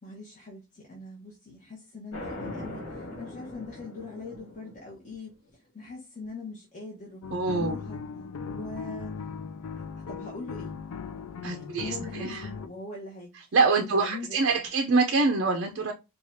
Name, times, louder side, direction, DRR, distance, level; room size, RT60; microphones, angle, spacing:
voice 1, 0.0-8.0 8.4-9.2 9.7-10.8 11.4-14.4, left 3 dB, 35° left, 1.1 m, -42 dB
sound 1, 2.1-4.9, left 1 dB, 60° left, 1.8 m, -40 dB
sound 2, 7.2-12.7, left 5 dB, 75° left, 0.4 m, -38 dB
voice 2, 7.3-7.8 11.4-12.5 13.5-15.9, right 3 dB, 55° right, 0.5 m, -25 dB
4.7 x 2.4 x 2.6 m
head